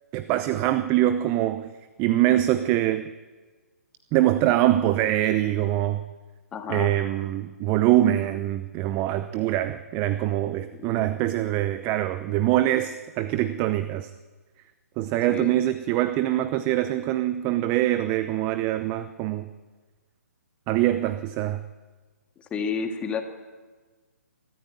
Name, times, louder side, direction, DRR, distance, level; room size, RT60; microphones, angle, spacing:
voice 1, 0.1-1.7 2.0-3.1 4.1-6.0 6.7-14.1 15.0-19.5 20.7-21.6, right 13 dB, 25° right, 12 dB, 0.7 m, -24 dB
voice 2, 6.5-7.0 10.7-11.2 15.3-15.6 22.4-23.2, left 6 dB, 15° left, 5 dB, 2.0 m, -31 dB
25.0 x 13.5 x 9.1 m, 1.4 s
hypercardioid pair, 140°, 9 cm